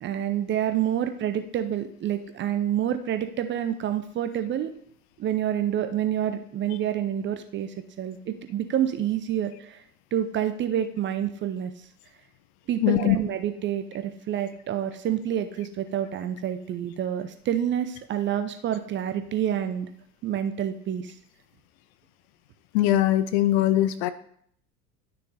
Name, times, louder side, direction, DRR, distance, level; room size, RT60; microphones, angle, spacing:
voice 1, 0.0-4.7 5.2-9.8 10.1-11.7 12.7-19.9 20.2-21.1, right 10 dB, 25° right, 9 dB, 0.6 m, -28 dB
voice 2, 12.8-13.2 22.7-24.1, left 13 dB, 45° left, 13 dB, 0.6 m, -21 dB
11.5 x 6.5 x 2.7 m, 0.65 s
figure-of-eight pair, 75°, 46 cm